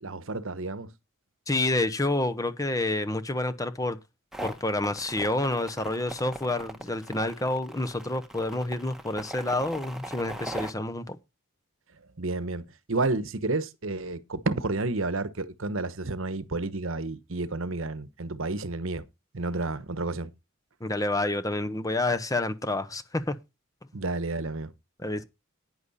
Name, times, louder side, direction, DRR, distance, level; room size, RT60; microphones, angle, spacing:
voice 1, 0.0-0.9 12.2-19.0 19.3-20.3 23.9-24.7, right 3 dB, 65° right, 1.1 m, -31 dB
voice 2, 1.5-4.0 4.4-11.2 20.8-23.3 25.0-25.2, left 2 dB, 15° left, 0.9 m, -28 dB
sound 1, 4.3-10.7, right 1 dB, ahead, 1.4 m, -39 dB
10.5 x 9.8 x 4.1 m
head